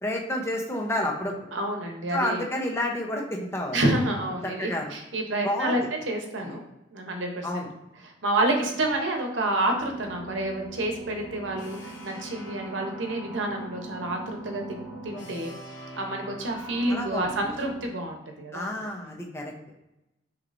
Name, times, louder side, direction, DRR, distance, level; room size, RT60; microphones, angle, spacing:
voice 1, 0.0-1.3 2.1-3.9 4.4-4.9 5.4-5.8 6.4-6.5 7.4-7.7 16.9-17.5 18.5-19.5, left 1 dB, 15° left, 0 dB, 0.7 m, -30 dB
voice 2, 1.5-2.4 3.7-6.6 6.9-7.6 8.0-15.5 16.0-18.7 19.0-19.1, right 1 dB, 80° right, 3 dB, 0.9 m, -29 dB
sound 1, 9.7-17.9, right 2 dB, 70° left, 0.8 m, -41 dB
6.3 x 3.0 x 2.6 m, 0.92 s
head